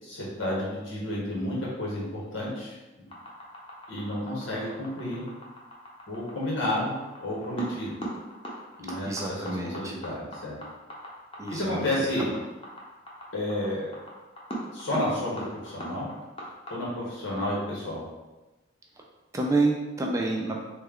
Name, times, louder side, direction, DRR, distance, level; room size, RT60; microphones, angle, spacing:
voice 1, 0.0-2.8 3.9-5.2 6.1-6.9 7.2-8.0 8.8-10.6 11.5-12.3 13.3-13.9 14.7-16.1 16.7-18.0, left 1 dB, 80° left, -5 dB, 1.2 m, -31 dB
sound 1, 3.1-16.7, right 1 dB, 30° left, 0.7 m, -39 dB
voice 2, 9.1-9.9 11.4-11.8 19.3-20.6, right 2 dB, 15° right, 0 dB, 0.3 m, -28 dB
3.2 x 2.2 x 3.5 m, 1.1 s
head